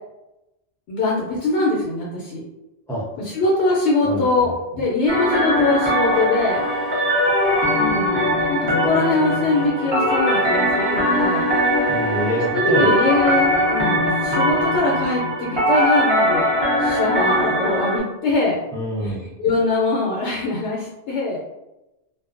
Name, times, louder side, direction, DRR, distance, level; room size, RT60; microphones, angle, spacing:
voice 1, 0.9-2.4 3.2-6.6 7.7-11.5 12.5-16.5 16.8-18.6 19.0-21.4, left 2 dB, 75° left, -3 dB, 0.8 m, -22 dB
voice 2, 4.0-4.5 11.9-12.9 18.7-19.3, equal, 5° left, -6 dB, 0.4 m, -25 dB
sound 1, 5.1-18.0, equal, 25° right, 0.8 m, -20 dB
sound 2, 6.1-7.8 9.5-12.5, equal, 80° right, 0.9 m, -33 dB
2.6 x 2.1 x 2.4 m, 0.96 s
omnidirectional pair, 1.2 m